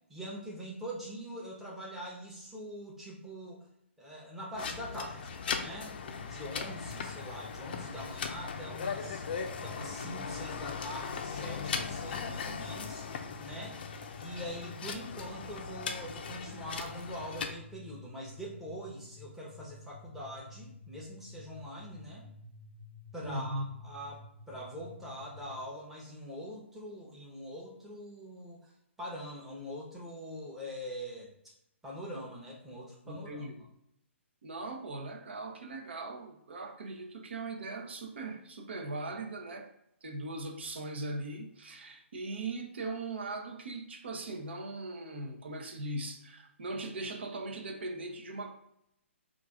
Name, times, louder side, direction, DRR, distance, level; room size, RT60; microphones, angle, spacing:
voice 1, 0.1-3.7 4.0-9.3 9.6-13.8 14.2-22.3 23.1-28.7 29.0-31.3 31.8-33.5, equal, 5° right, -5 dB, 0.8 m, -43 dB
sound 1, 4.6-17.5, left 6 dB, 50° left, 0.5 m, -39 dB
sound 2, 6.1-25.6, left 2 dB, 80° right, 1.5 m, -51 dB
voice 2, 23.2-23.7 33.1-33.5 34.4-39.7 40.0-48.5, right 2 dB, 60° right, 4 dB, 0.7 m, -39 dB
4.9 x 2.5 x 3.5 m, 0.78 s
figure-of-eight pair, 130°, 7 cm